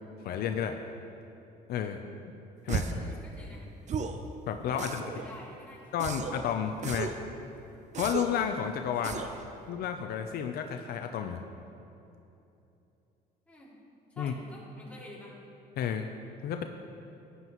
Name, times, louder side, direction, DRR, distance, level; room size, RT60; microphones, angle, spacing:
voice 1, 0.2-0.8 1.7-2.0 2.6-2.9 4.5-5.0 5.9-7.1 7.9-9.2 9.7-11.4 14.2-14.3 15.8-16.1 16.4-16.6, left 8 dB, 65° left, 6 dB, 0.6 m, -31 dB
sound 1, 2.7-3.1 3.9-4.2 4.8-5.3 6.0-6.4 6.8-7.2 7.9-8.4 9.0-9.4, right 6 dB, 45° right, 0.6 m, -34 dB
voice 2, 2.9-3.7 4.7-6.0 9.0-9.4 13.5-13.7 14.1-15.4, left 1 dB, 10° left, -6 dB, 2.5 m, -49 dB
13.5 x 9.6 x 3.0 m, 2.8 s
cardioid pair, 110°, 17 cm